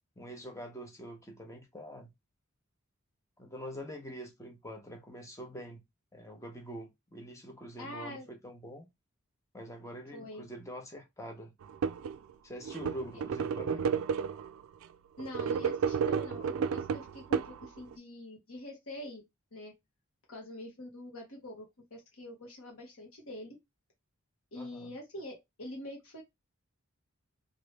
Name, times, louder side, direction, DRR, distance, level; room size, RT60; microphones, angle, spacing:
voice 1, 0.2-2.1 3.4-5.8 6.1-8.9 9.5-11.5 12.4-13.9 24.6-24.9, equal, 15° left, 0.7 m, -45 dB
voice 2, 7.8-8.3 10.1-10.4 15.2-19.7 20.3-21.6 21.9-23.5 24.5-26.2, left 1 dB, 75° left, 1.2 m, -45 dB
sound 1, 11.6-12.2 12.6-14.5 15.2-17.9, right 6 dB, 70° right, 0.3 m, -32 dB
3.1 x 2.6 x 3.2 m
head